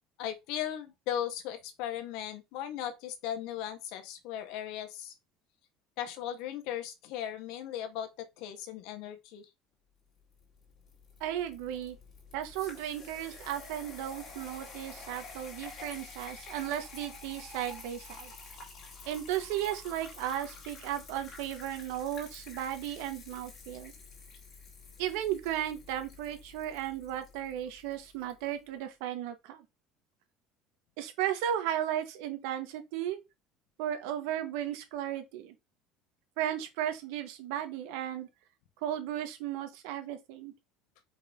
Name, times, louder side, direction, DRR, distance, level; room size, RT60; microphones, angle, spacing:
voice 1, 0.2-5.1 6.0-8.1 8.4-9.4, left 10 dB, 65° left, 1.5 m, -37 dB
sound 1, 10.4-28.4, left 3 dB, 35° left, 2.7 m, -49 dB
voice 2, 11.2-12.0 12.3-18.3 19.0-23.9 25.0-29.6 31.0-33.2 33.8-35.5 36.4-38.3 38.8-40.5, right 11 dB, 75° right, 1.6 m, -35 dB
5.3 x 3.8 x 5.3 m
cardioid pair, 165°, 0 cm